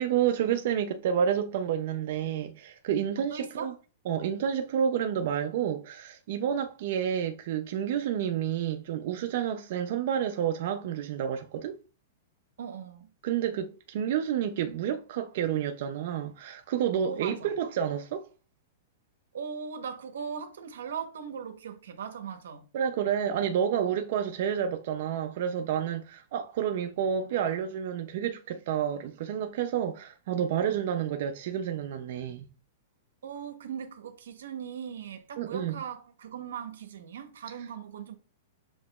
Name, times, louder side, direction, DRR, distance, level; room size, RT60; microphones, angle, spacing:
voice 1, 0.0-3.7 4.1-11.8 13.2-18.3 22.7-32.5 35.4-35.8, right 9 dB, 55° right, 0.4 m, -29 dB
voice 2, 3.3-3.8 12.6-13.1 17.0-17.5 19.3-22.7 33.2-38.1, right 7 dB, 90° right, 0.9 m, -39 dB
7.1 x 2.9 x 2.3 m
hypercardioid pair, 155°, 0 cm